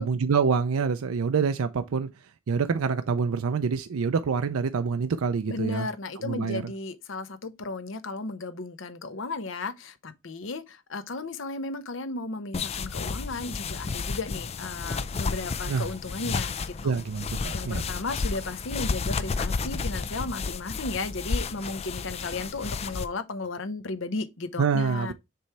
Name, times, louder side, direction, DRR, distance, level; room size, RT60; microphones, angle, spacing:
voice 1, 0.0-5.9 6.2-6.7 15.7-15.9 16.8-17.9 24.6-25.1, right 5 dB, 85° right, 0.5 m, -26 dB
voice 2, 5.5-16.9 17.5-25.1, left 3 dB, 60° left, 0.8 m, -35 dB
sound 1, 12.5-23.0, left 4 dB, 30° left, 0.4 m, -32 dB
6.8 x 3.2 x 4.5 m
head